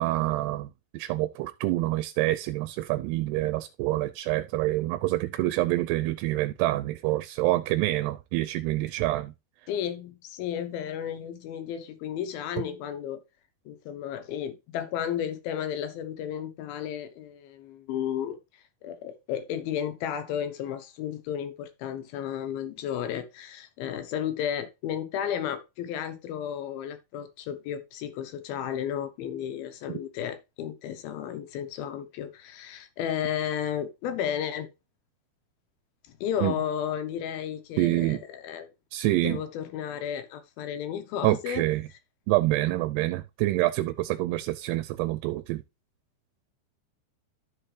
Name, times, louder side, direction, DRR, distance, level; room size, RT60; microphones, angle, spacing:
voice 1, 0.0-9.3 12.6-12.7 29.9-30.0 36.4-36.5 37.8-38.2 38.9-39.4 41.2-41.9 42.3-45.6, right 17 dB, 90° right, 2.6 m, -27 dB
voice 2, 9.7-13.2 13.7-18.4 18.8-34.7 36.2-38.7 39.2-41.6, left 9 dB, 75° left, 2.7 m, -33 dB
13.0 x 4.4 x 3.2 m
omnidirectional pair, 4.7 m